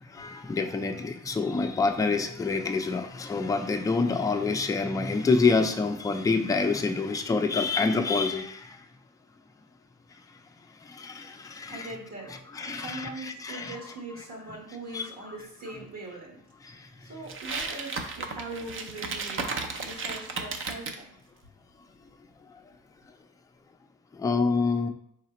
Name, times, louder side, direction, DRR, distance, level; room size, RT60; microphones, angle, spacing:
voice 1, 0.1-8.8 10.9-12.0 12.3-13.8 14.9-15.4 16.6-16.9 24.1-24.9, left 4 dB, 10° left, 5 dB, 0.4 m, -27 dB
voice 2, 11.7-12.4 12.7-16.4 17.0-21.1, right 2 dB, 65° right, -2 dB, 1.4 m, -41 dB
sound 1, 17.3-21.0, right 4 dB, 45° right, 0.5 m, -34 dB
4.0 x 3.2 x 2.9 m, 0.70 s
cardioid pair, 90°, 30 cm